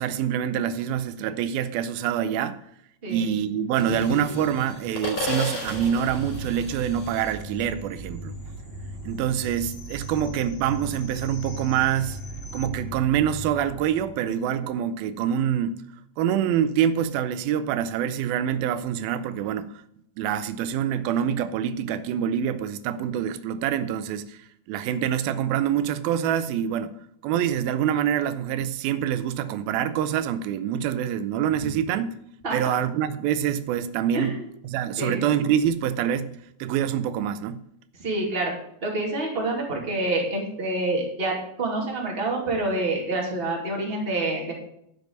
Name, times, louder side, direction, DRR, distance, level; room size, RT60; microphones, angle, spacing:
voice 1, 0.0-2.6 3.1-8.4 9.1-12.2 12.5-15.8 16.2-19.7 20.2-24.4 24.7-26.9 27.2-32.2 32.5-34.3 34.6-36.3 36.6-37.6, right 9 dB, 85° right, 2.5 m, -25 dB
voice 2, 3.0-3.4 32.4-32.7 34.1-34.4 35.0-35.2 38.0-38.5 38.8-44.5, right 2 dB, 20° right, 2.3 m, -27 dB
sound 1, 3.8-9.0 9.3-12.7, left 2 dB, 50° left, 4.7 m, -36 dB
sound 2, 5.6-14.2, right 1 dB, 70° right, 3.1 m, -38 dB
10.5 x 6.8 x 6.6 m
omnidirectional pair, 4.2 m